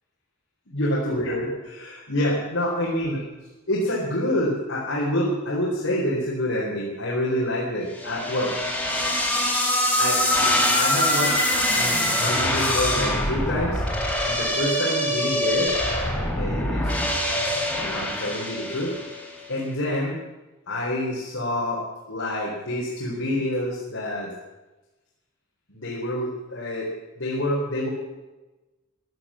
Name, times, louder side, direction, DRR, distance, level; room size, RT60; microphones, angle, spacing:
voice 1, 0.7-3.2 3.7-8.5 10.0-10.5 10.8-11.4 11.7-13.8 14.2-15.7 16.4-17.2 17.8-20.2 20.7-21.8 22.1-24.3 25.7-26.9 27.2-27.9, left 1 dB, 80° left, -5 dB, 4.0 m, -27 dB
sound 1, 8.0-19.3, left 1 dB, 5° left, 3.6 m, -24 dB
16.0 x 11.5 x 7.6 m, 1.1 s
head